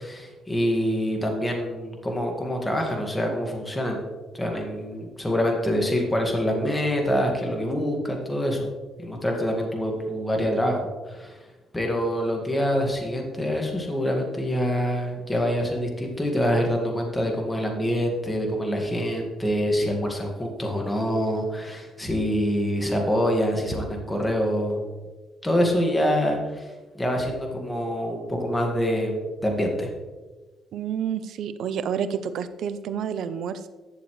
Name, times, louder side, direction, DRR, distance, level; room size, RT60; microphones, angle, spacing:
voice 1, 0.0-4.0 4.3-8.7 9.0-11.4 11.7-24.8 25.4-26.7 27.0-29.9, equal, 10° left, 1 dB, 1.9 m, -25 dB
voice 2, 30.7-33.7, right 8 dB, 75° right, 12 dB, 0.6 m, -29 dB
11.0 x 7.0 x 3.2 m, 1.2 s
cardioid pair, 90°, 0 cm